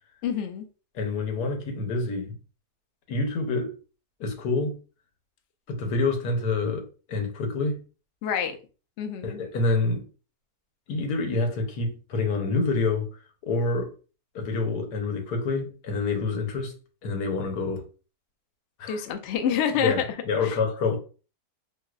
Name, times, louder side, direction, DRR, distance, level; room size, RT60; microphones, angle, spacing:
voice 1, 0.2-0.7 8.2-8.6 9.0-9.4 18.9-19.9 20.4-20.6, left 8 dB, 65° left, 0.7 m, -27 dB
voice 2, 0.9-2.4 3.1-3.7 4.2-4.8 5.7-7.8 9.2-10.0 10.9-13.1 13.4-13.9 14.3-16.7 17.0-17.8 18.8-19.0 19.8-21.0, left 3 dB, 90° left, 1.4 m, -27 dB
4.5 x 2.0 x 2.3 m
omnidirectional pair, 1.6 m